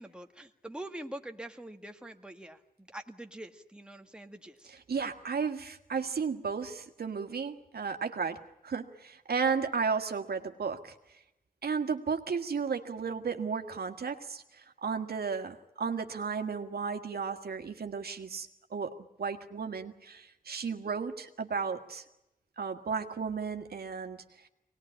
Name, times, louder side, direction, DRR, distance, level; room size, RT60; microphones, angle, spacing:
voice 1, 0.0-4.7, right 1 dB, 5° right, 5 dB, 1.7 m, -44 dB
voice 2, 4.9-10.9 11.6-18.9 19.2-22.0 22.6-24.2, right 5 dB, 80° right, 5 dB, 1.7 m, -34 dB
24.0 x 19.5 x 10.0 m, 0.91 s
cardioid pair, 65°, 16 cm